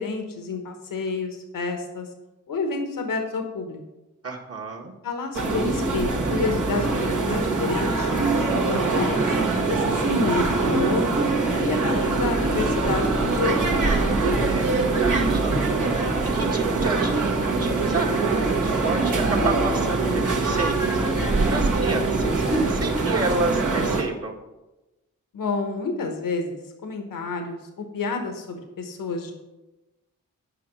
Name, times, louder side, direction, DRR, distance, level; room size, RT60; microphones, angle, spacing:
voice 1, 0.0-2.1 2.5-3.8 5.0-11.2 11.5-13.9 25.3-29.3, left 3 dB, 85° left, 5 dB, 1.2 m, -29 dB
voice 2, 4.2-4.9 14.2-15.7 16.2-21.2 21.5-22.3 22.7-24.4, right 3 dB, 45° right, 0 dB, 1.7 m, -30 dB
sound 1, 5.3-24.0, right 3 dB, 70° right, 1.5 m, -23 dB
8.3 x 5.3 x 6.2 m, 1.0 s
cardioid pair, 50°, 32 cm